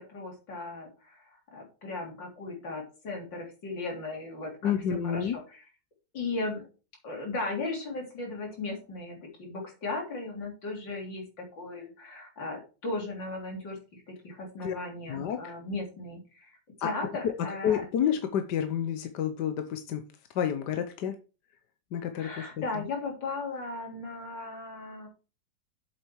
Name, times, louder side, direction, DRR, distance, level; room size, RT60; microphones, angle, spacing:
voice 1, 0.0-5.6 6.1-6.6 7.0-17.8 22.1-25.1, left 3 dB, 85° left, 0 dB, 4.0 m, -37 dB
voice 2, 4.6-5.3 14.6-14.7 15.1-15.5 16.8-16.9 17.6-20.0 20.3-21.1 21.9-22.3, left 9 dB, 70° left, 7 dB, 1.4 m, -29 dB
7.9 x 7.6 x 4.6 m, 0.33 s
omnidirectional pair, 1.9 m